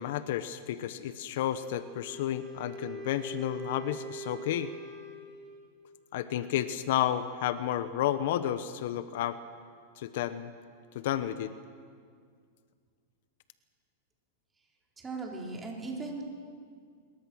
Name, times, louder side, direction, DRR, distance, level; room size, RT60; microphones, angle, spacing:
voice 1, 0.0-4.7 6.1-9.4 10.0-10.5 10.9-11.5, left 11 dB, 65° left, 12 dB, 1.1 m, -31 dB
Wind instrument woodwind instrument, 1.4-5.8, right 2 dB, 10° left, 6.9 m, -43 dB
voice 2, 15.0-16.2, right 3 dB, 15° right, -1 dB, 4.2 m, -38 dB
25.0 x 22.0 x 6.3 m, 2.1 s
supercardioid pair, 140°, 0 cm